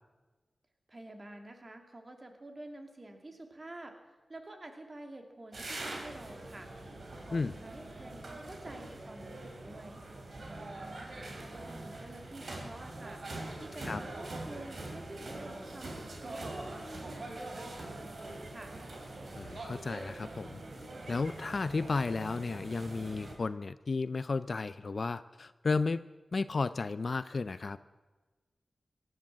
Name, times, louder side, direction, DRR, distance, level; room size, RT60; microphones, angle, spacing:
voice 1, 0.9-4.0 4.3-6.7 7.2-10.0 10.5-18.7, right 1 dB, 45° right, 4 dB, 2.6 m, -49 dB
sound 1, 5.5-23.4, right 2 dB, 70° right, 2.9 m, -43 dB
voice 2, 19.4-20.6 21.1-26.0 26.3-27.8, left 4 dB, 65° left, 14 dB, 0.4 m, -33 dB
17.0 x 10.0 x 7.5 m, 1.2 s
cardioid pair, 40°, 0 cm